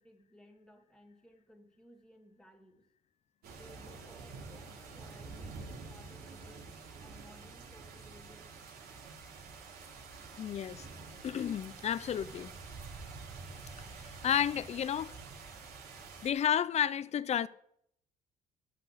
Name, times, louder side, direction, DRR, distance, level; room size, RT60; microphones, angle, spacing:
voice 1, 0.0-2.8 3.6-6.7 7.0-8.7, equal, 5° left, 2.5 m, -59 dB
sound 1, 3.4-16.3, right 4 dB, 70° right, 3.3 m, -48 dB
voice 2, 10.4-10.9 11.2-12.5 13.8-13.9 14.2-15.1 16.2-17.5, left 9 dB, 40° left, 0.5 m, -31 dB
12.0 x 5.9 x 7.7 m
cardioid pair, 110°, 17 cm